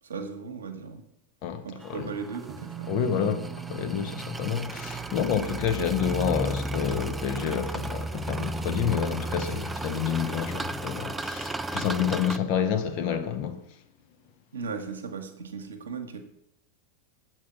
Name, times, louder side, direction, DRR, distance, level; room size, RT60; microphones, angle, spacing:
voice 1, 0.0-1.0 1.6-2.9 14.5-16.2, right 5 dB, 65° right, 1.1 m, -37 dB
voice 2, 1.4-2.1 2.9-13.6, left 8 dB, 45° left, 0.8 m, -29 dB
sound 1, 1.8-12.4, right 2 dB, 10° right, 0.3 m, -34 dB
sound 2, 2.5-11.6 11.9-12.0, right 11 dB, 40° right, 0.7 m, -45 dB
7.4 x 4.6 x 5.9 m
figure-of-eight pair, 90°, 0 cm